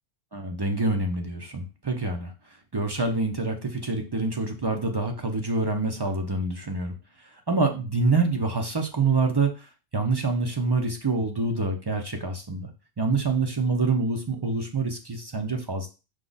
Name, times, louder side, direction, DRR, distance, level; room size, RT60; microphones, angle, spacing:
voice 1, 0.3-2.3 2.7-6.9 7.5-12.7 13.0-15.9, right 3 dB, 35° right, 3 dB, 0.4 m, -26 dB
4.8 x 2.3 x 3.9 m, 0.30 s
omnidirectional pair, 1.2 m